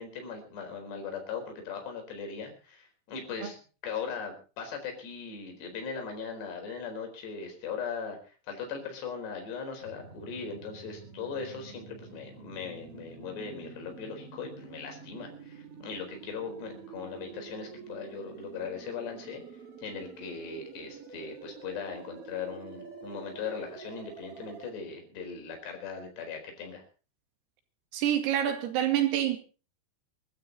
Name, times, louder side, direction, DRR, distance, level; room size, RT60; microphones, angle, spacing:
voice 1, 0.0-19.4 19.8-26.9, left 5 dB, 55° left, 6.3 m, -39 dB
sound 1, 9.8-24.7, right 5 dB, 40° right, 2.3 m, -48 dB
voice 2, 27.9-29.4, right 11 dB, 85° right, 4.9 m, -27 dB
24.0 x 12.0 x 4.1 m
omnidirectional pair, 5.8 m